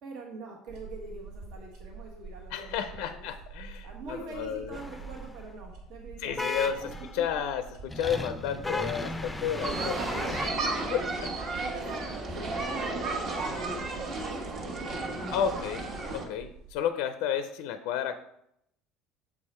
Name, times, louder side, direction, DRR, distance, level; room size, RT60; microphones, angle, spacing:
voice 1, 0.0-3.3 3.8-7.4 9.1-9.3 9.5-11.2 11.5-15.6, right 3 dB, 65° right, 0 dB, 1.3 m, -45 dB
sound 1, 0.7-16.7, right 4 dB, 85° right, 2.5 m, -47 dB
voice 2, 2.5-4.8 6.2-6.8 7.1-10.2 10.9-11.7 15.3-15.9 16.1-18.2, left 8 dB, 80° left, 10 dB, 0.4 m, -32 dB
sound 2, 4.7-5.4 6.4-7.3 7.9-10.5, left 2 dB, 5° left, 0.5 m, -36 dB
sound 3, 9.6-16.3, right 3 dB, 40° right, 1.1 m, -33 dB
7.1 x 4.7 x 4.3 m, 0.77 s
cardioid pair, 145°, 0 cm